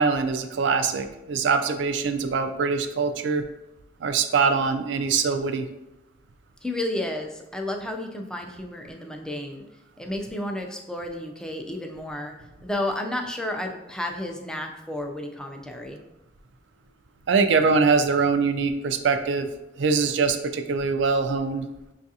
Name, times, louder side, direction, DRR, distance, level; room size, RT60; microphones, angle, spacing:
voice 1, 0.0-3.4 4.0-5.7 17.3-19.5 19.8-21.7, right 4 dB, 75° right, 8 dB, 0.4 m, -23 dB
voice 2, 6.6-9.6 10.0-12.3 12.6-16.0, left 1 dB, 5° left, 2 dB, 0.4 m, -32 dB
6.1 x 2.4 x 2.7 m, 0.95 s
head